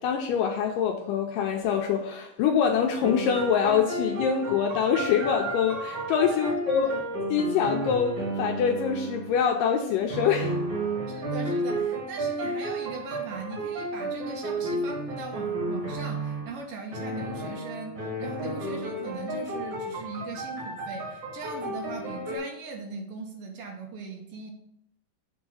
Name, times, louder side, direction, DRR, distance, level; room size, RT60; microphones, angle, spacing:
voice 1, 0.0-6.9 7.3-10.6, left 7 dB, 80° left, 2 dB, 2.0 m, -25 dB
sound 1, 3.0-9.4 10.1-16.6 16.9-22.4, right 1 dB, 45° right, 1.6 m, -32 dB
voice 2, 6.3-7.0 11.1-24.5, right 4 dB, 70° right, 1 dB, 2.4 m, -39 dB
7.0 x 3.6 x 6.3 m, 0.78 s
omnidirectional pair, 4.4 m